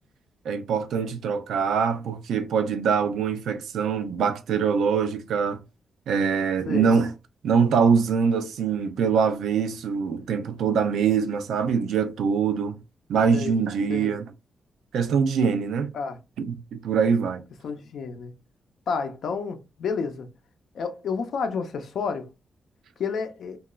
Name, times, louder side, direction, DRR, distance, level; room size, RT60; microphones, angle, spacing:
voice 1, 0.5-5.6 6.1-7.1 7.4-12.8 13.1-14.3 14.9-15.9 16.4-17.4, right 6 dB, 85° right, 0.4 m, -23 dB
voice 2, 6.7-7.0 13.3-13.6 13.9-14.2 15.9-16.2 17.6-18.3 18.9-20.3 20.7-22.3 23.0-23.6, left 5 dB, 70° left, 0.5 m, -30 dB
2.9 x 2.3 x 2.3 m
cardioid pair, 115°, 0 cm